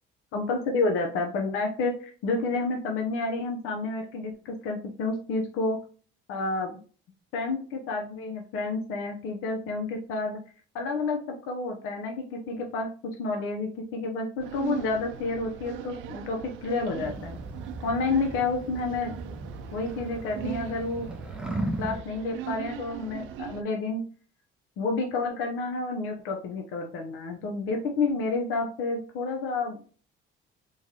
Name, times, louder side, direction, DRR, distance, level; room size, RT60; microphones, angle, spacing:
voice 1, 0.3-5.8 6.3-6.8 7.3-10.4 10.7-17.4 17.8-19.1 19.7-21.1 21.8-24.0 24.8-29.8, left 3 dB, 90° left, 2 dB, 0.6 m, -30 dB
sound 1, 14.4-23.6, right 10 dB, 70° right, 0.4 m, -40 dB
sound 2, 17.0-22.0, right 1 dB, 5° right, 0.3 m, -37 dB
3.6 x 3.1 x 2.7 m, 0.42 s
cardioid pair, 170°, 21 cm